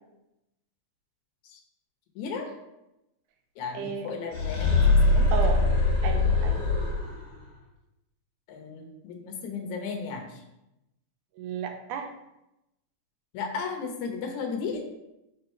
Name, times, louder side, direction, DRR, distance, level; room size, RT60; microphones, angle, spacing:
voice 1, 2.2-2.5 3.6-5.3 8.5-10.4 13.3-14.9, left 5 dB, 75° left, 3 dB, 2.3 m, -35 dB
voice 2, 3.7-4.1 5.3-5.7 6.0-6.6 11.4-12.1, right 6 dB, 85° right, 5 dB, 2.1 m, -33 dB
sound 1, 4.3-7.3, left 3 dB, 60° left, 2.4 m, -22 dB
4.8 x 4.6 x 4.4 m, 0.91 s
omnidirectional pair, 3.5 m